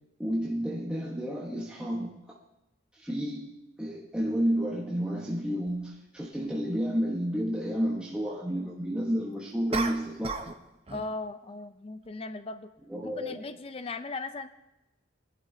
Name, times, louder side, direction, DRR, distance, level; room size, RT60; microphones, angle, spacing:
voice 1, 0.2-2.4 2.9-10.5 12.9-13.4, equal, 5° right, -4 dB, 1.1 m, -31 dB
sound 1, 5.7-5.8 9.7-10.6 10.9-11.2, right 4 dB, 30° right, 0.8 m, -33 dB
voice 2, 10.9-12.7 13.0-14.5, left 3 dB, 30° left, 10 dB, 0.5 m, -38 dB
21.5 x 11.5 x 2.8 m, 0.96 s
head